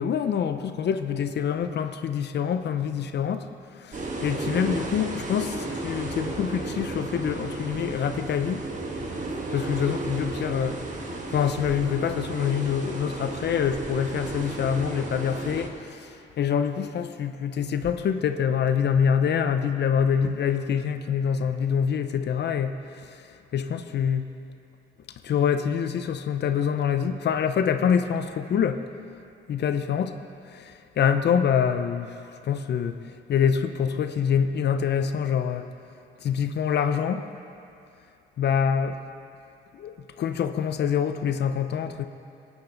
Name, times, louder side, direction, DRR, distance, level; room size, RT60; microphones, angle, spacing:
voice 1, 0.0-8.7 9.5-10.8 11.3-23.2 23.5-24.3 25.2-28.8 29.5-30.1 30.5-32.9 33.3-35.7 36.2-37.3 38.4-39.0 39.7-42.1, left 7 dB, 60° left, 9 dB, 0.7 m, -25 dB
sound 1, 3.9-15.7, right 2 dB, 40° right, 1.6 m, -33 dB
19.0 x 9.1 x 3.9 m, 2.6 s
cardioid pair, 90°, 20 cm